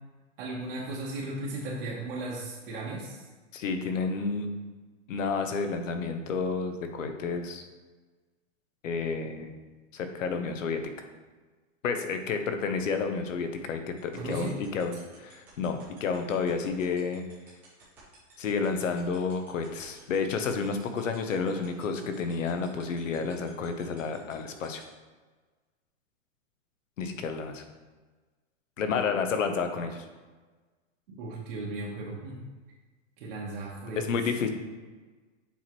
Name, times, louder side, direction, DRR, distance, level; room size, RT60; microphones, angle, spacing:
voice 1, 0.4-3.2 14.1-14.5 31.2-32.3 33.2-34.2, right 2 dB, 45° right, -4 dB, 1.1 m, -36 dB
voice 2, 3.5-4.5 5.1-7.6 8.8-9.5 9.9-10.8 11.8-17.2 18.4-24.8 27.0-27.6 28.8-30.0 34.0-34.5, left 5 dB, 85° left, 6 dB, 1.0 m, -30 dB
sound 1, 14.0-24.8, right 5 dB, 5° right, 0.3 m, -56 dB
7.1 x 4.4 x 3.1 m, 1.3 s
hypercardioid pair, 155°, 38 cm